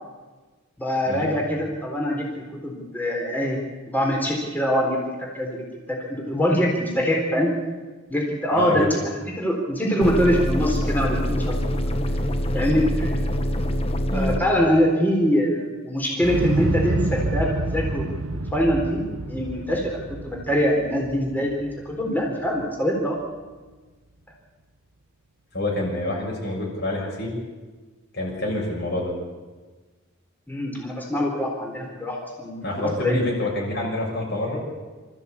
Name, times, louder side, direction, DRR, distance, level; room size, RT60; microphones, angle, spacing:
voice 1, 0.8-3.6 3.9-5.0 5.3-7.5 8.1-8.9 9.4-11.7 12.5-13.2 14.1-18.0 18.5-20.0 20.2-23.2 30.5-33.2, equal, 10° left, -1 dB, 4.0 m, -24 dB
voice 2, 8.5-8.9 14.1-14.3 25.5-27.3 28.1-29.1 32.6-34.6, left 1 dB, 50° left, -3 dB, 6.5 m, -27 dB
sound 1, 10.0-14.4, equal, 25° left, 1.2 m, -25 dB
Explosion, 16.2-22.2 22.6-22.7, right 2 dB, 75° right, 1.1 m, -28 dB
27.0 x 14.5 x 8.5 m, 1.3 s
head